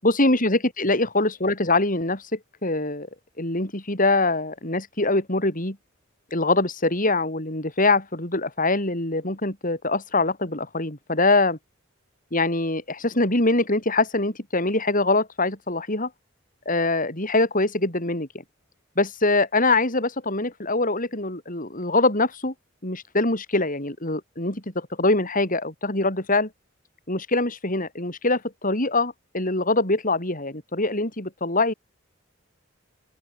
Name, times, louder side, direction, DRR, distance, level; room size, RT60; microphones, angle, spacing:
voice 1, 0.0-3.1 3.4-5.8 6.3-11.6 12.3-16.1 16.7-18.3 19.0-22.5 22.8-26.5 27.1-31.7, left 2 dB, 45° left, 7.2 m, -23 dB
open air
head